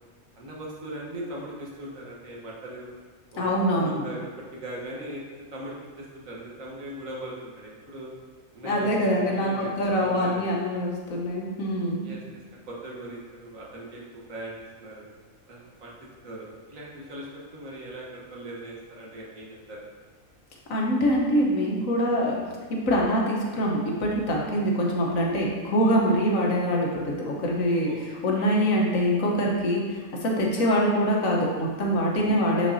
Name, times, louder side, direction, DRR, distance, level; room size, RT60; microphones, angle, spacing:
voice 1, 0.4-2.9 3.3-5.2 5.5-8.1 8.5-9.7 10.0-10.6 12.0-12.2 12.7-14.0 14.3-14.5 14.8-15.1 15.5-15.9 16.2-19.8 25.8-26.0 27.8-28.0 32.2-32.5, right 1 dB, 75° right, -3 dB, 1.7 m, -39 dB
voice 2, 3.4-4.0 8.6-12.1 20.7-22.4 22.7-27.9 28.2-32.7, equal, 75° left, -2 dB, 1.5 m, -24 dB
6.6 x 6.4 x 2.7 m, 1.5 s
omnidirectional pair, 1.4 m